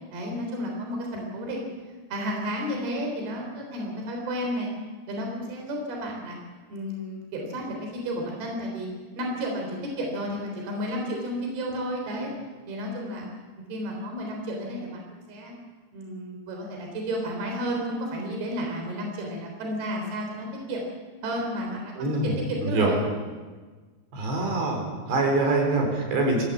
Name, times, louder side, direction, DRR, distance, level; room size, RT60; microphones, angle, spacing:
voice 1, 0.1-1.7 2.1-4.7 5.1-6.4 6.7-8.9 9.1-12.3 12.7-13.3 13.7-15.5 15.9-20.8 21.2-21.9 22.2-23.0, equal, 65° right, 1 dB, 5.6 m, -32 dB
voice 2, 21.9-22.3 22.6-22.9 24.1-26.4, right 2 dB, 80° right, 1 dB, 6.4 m, -24 dB
24.0 x 16.0 x 8.3 m, 1.4 s
omnidirectional pair, 4.9 m